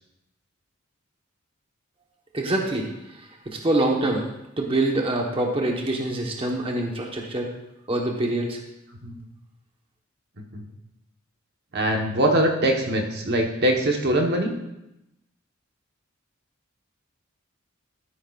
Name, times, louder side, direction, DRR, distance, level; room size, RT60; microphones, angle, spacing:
voice 1, 2.3-4.3 4.6-7.5 7.9-8.6, right 2 dB, 25° right, 0 dB, 1.1 m, -25 dB
voice 2, 11.7-14.5, right 1 dB, 55° right, 2 dB, 1.1 m, -22 dB
13.0 x 9.2 x 2.4 m, 0.88 s
head